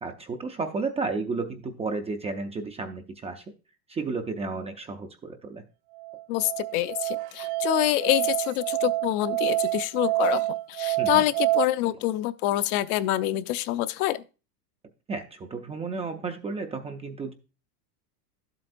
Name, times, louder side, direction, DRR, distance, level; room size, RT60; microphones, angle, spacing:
voice 1, 0.0-3.4 3.9-5.6 11.0-11.2 15.1-17.3, right 4 dB, 15° right, 0.4 m, -32 dB
Musical instrument, 6.0-11.6, right 19 dB, 75° right, 0.7 m, -27 dB
voice 2, 6.3-14.2, left 15 dB, 60° left, 0.7 m, -26 dB
12.0 x 7.8 x 2.6 m
supercardioid pair, 130°, 49 cm